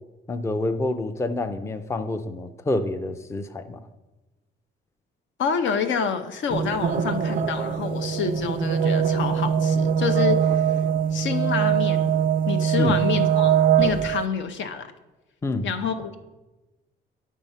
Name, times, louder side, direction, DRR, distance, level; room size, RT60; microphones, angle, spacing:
voice 1, 0.3-3.8 12.8-12.9 15.4-15.7, left 2 dB, 15° left, 8 dB, 0.4 m, -27 dB
voice 2, 5.4-10.8 11.1-12.1 12.5-14.9 15.6-16.2, left 6 dB, 70° left, 7 dB, 0.6 m, -28 dB
sound 1, 6.5-14.2, right 8 dB, 45° right, 0.4 m, -22 dB
8.5 x 3.6 x 5.6 m, 1.1 s
cardioid pair, 90°, 20 cm